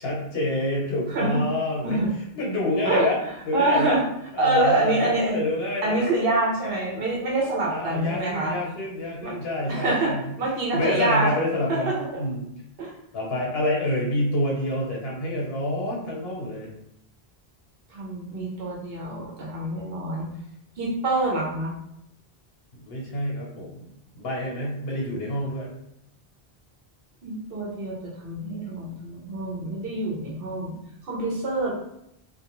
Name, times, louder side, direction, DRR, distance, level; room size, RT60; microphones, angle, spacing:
voice 1, 0.0-2.1 2.3-3.2 3.4-4.0 4.3-6.0 7.7-10.3 10.7-12.5 13.1-16.7 22.7-23.8 24.1-25.7, left 1 dB, 75° left, -3 dB, 1.0 m, -27 dB
voice 2, 3.5-4.0 4.4-5.4 5.8-8.5 9.2-9.3 9.7-10.1 10.4-11.3 11.7-11.9 12.8-12.9 17.9-20.3 20.8-21.7 27.2-30.7 31.0-31.7, right 2 dB, 70° right, -3 dB, 1.0 m, -25 dB
2.5 x 2.3 x 2.9 m, 0.78 s
omnidirectional pair, 1.0 m